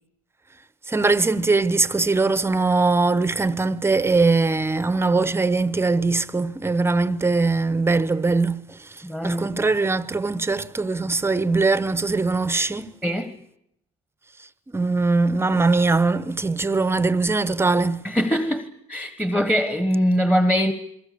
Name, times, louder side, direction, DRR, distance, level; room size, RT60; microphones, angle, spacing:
voice 1, 0.9-12.9 14.7-18.0, right 3 dB, 15° right, 0.9 m, -21 dB
voice 2, 9.0-9.5 13.0-13.4 18.0-20.7, equal, 5° left, 1.4 m, -22 dB
28.0 x 22.0 x 7.0 m
cardioid pair, 115°, 17 cm